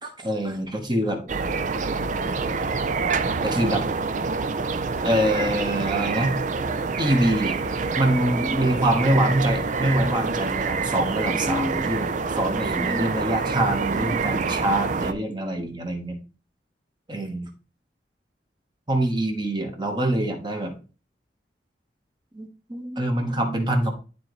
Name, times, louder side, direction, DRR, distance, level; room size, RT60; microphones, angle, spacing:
voice 1, 0.0-1.3 3.4-3.8 5.0-6.3 7.0-7.6 7.9-12.1 12.4-16.2 17.1-17.5 18.9-20.7 22.3-23.9, right 1 dB, 25° right, 3 dB, 1.4 m, -24 dB
sound 1, 1.3-15.1, right 4 dB, 45° right, 0.5 m, -26 dB
11.5 x 4.0 x 3.1 m, 0.34 s
head